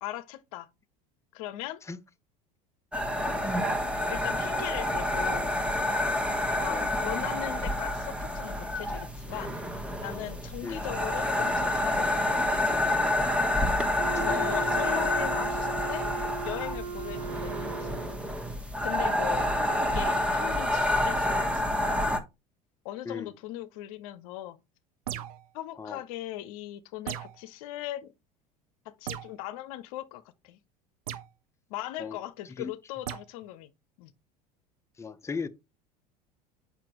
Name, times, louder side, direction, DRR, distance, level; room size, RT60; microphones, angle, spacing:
voice 1, 0.0-0.7 1.3-1.8 4.1-5.5 6.6-9.6 10.0-12.5 14.2-16.1 16.4-17.9 18.8-19.5 19.8-22.1 22.8-24.6 25.5-28.1 28.9-30.6 31.7-33.7 34.0-34.1, left 14 dB, 60° left, 0.7 m, -39 dB
sound 1, 2.9-22.2, left 1 dB, 5° right, 1.3 m, -28 dB
voice 2, 10.6-10.9 14.1-14.8 23.0-23.4 25.8-26.0 32.0-32.2 32.4-32.7 35.0-35.5, left 5 dB, 15° left, 0.7 m, -37 dB
Wind instrument woodwind instrument, 14.0-18.3, right 6 dB, 85° right, 0.5 m, -37 dB
sound 2, 25.1-25.5 27.1-27.4 29.1-29.4 31.1-31.3 33.1-33.3, right 11 dB, 65° right, 0.8 m, -37 dB
7.5 x 5.7 x 3.0 m
figure-of-eight pair, 70°, 20 cm